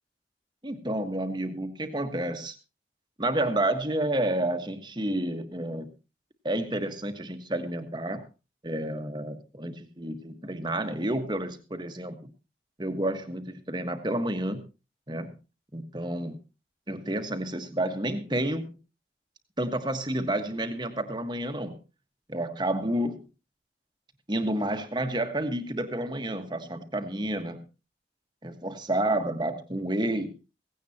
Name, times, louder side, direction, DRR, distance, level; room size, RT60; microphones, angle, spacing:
voice 1, 0.6-2.5 3.2-5.9 6.4-8.2 8.6-12.3 12.8-14.6 15.1-15.3 15.7-16.4 16.9-18.6 19.6-21.8 22.3-23.2 24.3-27.6 28.4-30.3, right 1 dB, 25° right, 7 dB, 1.5 m, -30 dB
16.5 x 16.5 x 2.9 m, 0.29 s
head